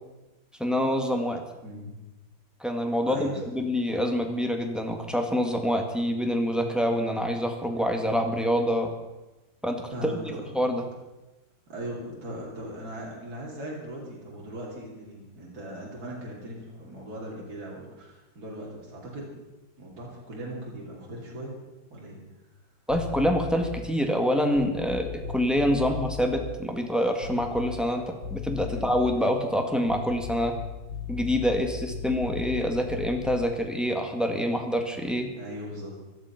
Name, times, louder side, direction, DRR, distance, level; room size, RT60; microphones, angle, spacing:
voice 1, 0.6-1.4 2.6-8.9 9.6-10.2 10.5-10.8 22.9-28.0 28.3-30.5 31.1-35.3, equal, ahead, 3 dB, 1.6 m, -26 dB
voice 2, 1.6-1.9 3.1-3.4 9.9-10.4 11.7-19.3 19.8-21.5 21.9-22.2 28.7-28.9 35.4-36.0, right 1 dB, 50° right, -4 dB, 3.5 m, -39 dB
sound 1, 22.9-23.9 24.5-26.4 27.2-27.9 28.2-29.2 29.8-33.5, left 7 dB, 70° left, 3.3 m, -37 dB
17.0 x 12.0 x 6.0 m, 1.1 s
omnidirectional pair, 2.1 m